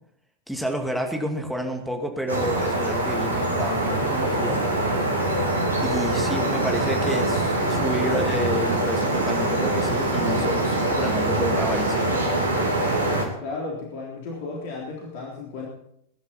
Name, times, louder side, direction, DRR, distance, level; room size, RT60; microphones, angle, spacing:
voice 1, 0.5-4.6 5.8-12.1, equal, ahead, 2 dB, 2.5 m, -30 dB
sound 1, 2.3-13.3, right 1 dB, 80° right, 3.1 m, -24 dB
voice 2, 13.4-15.7, left 3 dB, 50° left, -2 dB, 3.6 m, -34 dB
22.0 x 11.0 x 4.5 m, 0.74 s
figure-of-eight pair, 90°, 0 cm